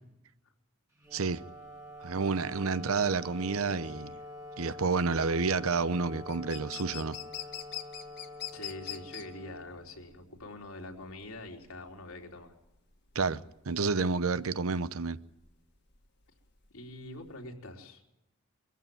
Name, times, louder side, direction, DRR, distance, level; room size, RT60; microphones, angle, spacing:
Wind instrument woodwind instrument, 1.0-10.3, left 1 dB, 15° right, 2.2 m, -46 dB
sound 1, 1.1-17.5, left 11 dB, 50° left, 2.1 m, -45 dB
voice 1, 1.1-1.4 2.0-4.2 4.6-7.2 13.1-15.2, right 4 dB, 75° right, 0.8 m, -30 dB
voice 2, 8.5-12.5 16.7-18.0, left 2 dB, 80° left, 3.5 m, -44 dB
23.0 x 15.0 x 9.2 m
head